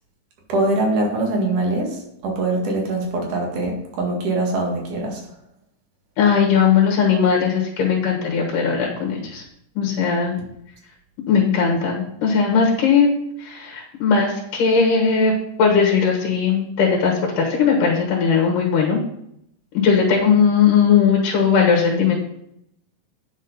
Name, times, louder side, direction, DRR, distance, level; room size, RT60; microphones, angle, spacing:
voice 1, 0.5-5.2, right 2 dB, 70° right, 0 dB, 3.3 m, -23 dB
voice 2, 6.2-9.4 9.8-10.4 11.3-13.1 13.4-15.3 15.6-19.0 19.7-22.2, left 6 dB, 80° left, -1 dB, 3.0 m, -18 dB
9.7 x 6.4 x 5.3 m, 0.77 s
omnidirectional pair, 3.7 m